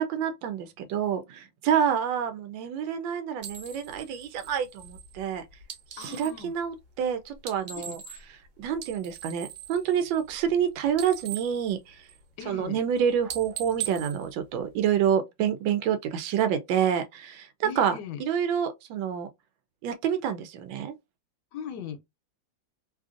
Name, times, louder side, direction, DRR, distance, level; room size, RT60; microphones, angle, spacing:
voice 1, 0.0-5.4 5.9-8.0 8.3-12.0 12.4-19.3 19.8-20.9, right 8 dB, 85° right, 1.3 m, -28 dB
sound 1, 3.4-6.4 7.3-8.4 8.7-10.6 10.9-12.4 12.8-13.0 13.3-15.1, right 9 dB, 60° right, 1.3 m, -41 dB
voice 2, 6.0-6.5 7.7-7.9 12.4-12.8 17.6-18.2 21.5-22.1, left 8 dB, 70° left, 1.2 m, -39 dB
3.3 x 2.5 x 2.4 m
omnidirectional pair, 2.0 m